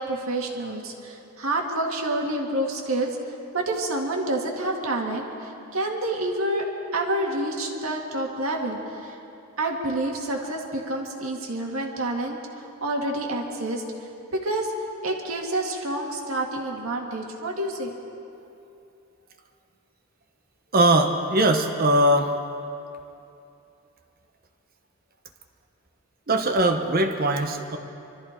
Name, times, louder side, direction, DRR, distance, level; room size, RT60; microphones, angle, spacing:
voice 1, 0.0-3.1 3.5-6.6 6.9-9.2 9.6-13.8 14.3-14.7 15.0-17.9, right 1 dB, 70° right, 0 dB, 2.0 m, -28 dB
voice 2, 20.7-22.3 26.3-27.8, right 1 dB, 45° right, 5 dB, 1.0 m, -21 dB
24.0 x 13.5 x 4.5 m, 2.7 s
head